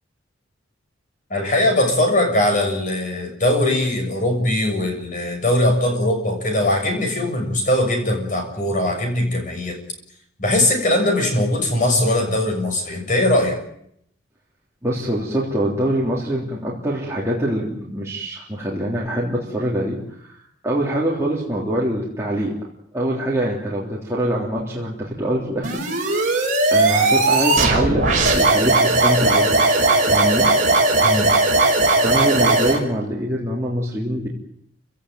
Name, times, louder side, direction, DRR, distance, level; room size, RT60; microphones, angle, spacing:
voice 1, 1.3-9.8 10.4-13.6 31.0-31.3, left 1 dB, 40° left, 3 dB, 6.7 m, -20 dB
voice 2, 14.8-22.5 22.9-26.4 26.7-30.7 32.0-34.3, right 1 dB, 15° right, -4 dB, 3.4 m, -24 dB
sound 1, 25.6-32.8, right 2 dB, 40° right, 5.9 m, -17 dB
28.0 x 17.0 x 9.3 m, 0.73 s
head